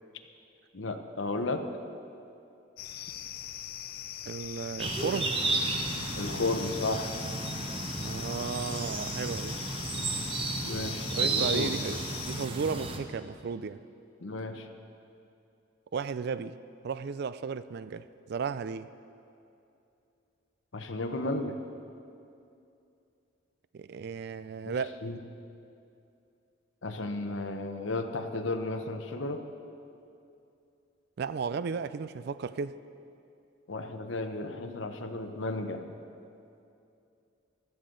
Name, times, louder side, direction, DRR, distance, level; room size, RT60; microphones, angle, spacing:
voice 1, 0.7-1.7 6.1-7.2 10.6-11.7 14.2-14.7 20.7-21.6 24.6-24.8 25.0-25.2 26.8-29.4 33.7-35.8, left 2 dB, 75° left, 0.9 m, -33 dB
sound 1, 2.8-12.5, left 11 dB, 50° left, 0.5 m, -41 dB
voice 2, 4.3-5.3 8.0-9.6 11.1-13.8 15.9-16.6 16.8-18.9 23.7-25.0 31.2-32.7, right 5 dB, 55° right, 0.4 m, -34 dB
sound 2, 4.8-13.0, right 3 dB, 30° right, 0.9 m, -33 dB
16.0 x 12.0 x 3.9 m
head